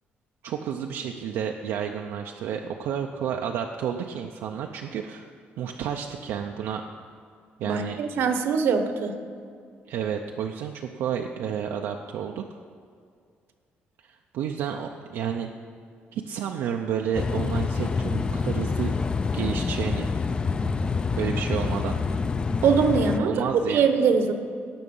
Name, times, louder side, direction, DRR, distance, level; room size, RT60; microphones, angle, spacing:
voice 1, 0.4-5.2 5.6-6.8 7.6-8.0 9.9-12.4 14.0-15.5 16.1-18.9 19.3-20.1 21.2-22.0 23.2-23.8, right 8 dB, 90° right, 3 dB, 0.6 m, -31 dB
voice 2, 7.6-9.1 22.6-24.3, right 5 dB, 70° right, 7 dB, 1.0 m, -22 dB
sound 1, 17.1-23.2, left 4 dB, 25° left, 0.4 m, -27 dB
17.5 x 6.1 x 5.5 m, 2.2 s
cardioid pair, 150°, 4 cm